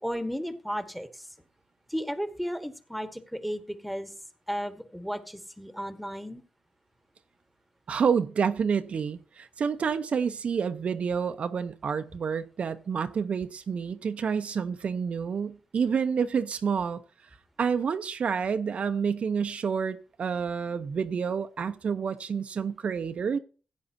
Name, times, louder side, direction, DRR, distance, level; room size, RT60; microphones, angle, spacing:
voice 1, 0.0-1.3 1.9-4.1 4.5-6.4, equal, ahead, 1.5 m, -34 dB
voice 2, 7.9-17.0 17.6-23.4, right 6 dB, 60° right, 0.9 m, -29 dB
16.0 x 9.4 x 2.8 m
wide cardioid pair, 130°, 2 cm